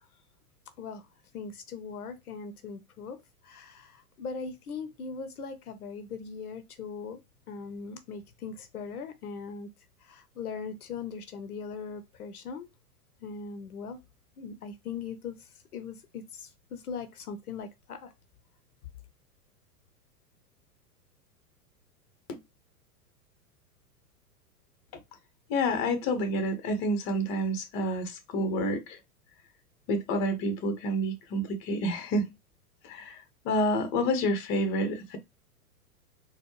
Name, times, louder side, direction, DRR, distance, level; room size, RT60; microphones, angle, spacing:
voice 1, 1.3-3.2 3.4-7.2 7.5-9.7 10.0-12.7 13.2-14.0 14.4-18.1, left 5 dB, 70° left, 0.7 m, -40 dB
voice 2, 25.5-29.0 29.9-32.3 32.8-33.2 33.4-35.2, equal, 30° left, 0.8 m, -28 dB
4.1 x 2.1 x 2.9 m
figure-of-eight pair, 95°, 46 cm